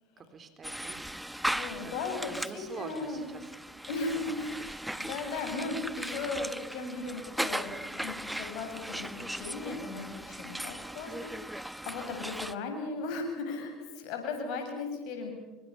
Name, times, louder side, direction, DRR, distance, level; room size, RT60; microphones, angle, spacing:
voice 1, 0.2-1.5 1.8-2.0 2.3-3.5 4.2-4.4, right 5 dB, 35° right, 8 dB, 3.9 m, -45 dB
sound 1, 0.6-12.5, right 1 dB, 5° right, 1.1 m, -38 dB
voice 2, 1.5-3.3 3.9-11.6 11.9-13.7 14.0-15.3, left 3 dB, 65° left, 4 dB, 7.6 m, -37 dB
27.0 x 25.0 x 7.1 m, 1.1 s
hypercardioid pair, 70°, 0 cm